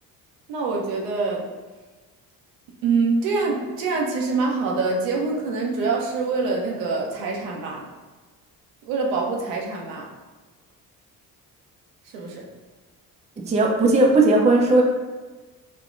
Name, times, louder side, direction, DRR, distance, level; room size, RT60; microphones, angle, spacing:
voice 1, 0.5-1.5 2.8-7.9 8.9-10.1 12.0-12.5, right 4 dB, 70° right, -1 dB, 0.8 m, -25 dB
voice 2, 13.4-14.8, right 2 dB, 15° right, 0 dB, 0.4 m, -17 dB
3.5 x 2.8 x 2.5 m, 1.3 s
hypercardioid pair, 50°, 49 cm